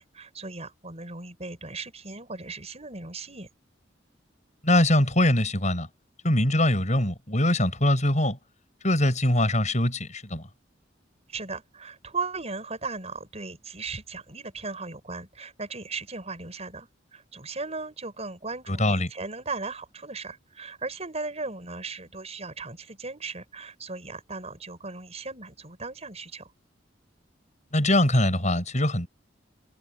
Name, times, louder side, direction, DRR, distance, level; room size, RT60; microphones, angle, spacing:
voice 1, 0.0-3.5 11.3-26.5, right 3 dB, 35° right, 6.0 m, -37 dB
voice 2, 4.6-5.9 6.2-8.4 8.8-10.5 18.7-19.1 27.7-29.1, left 1 dB, 40° left, 7.7 m, -22 dB
head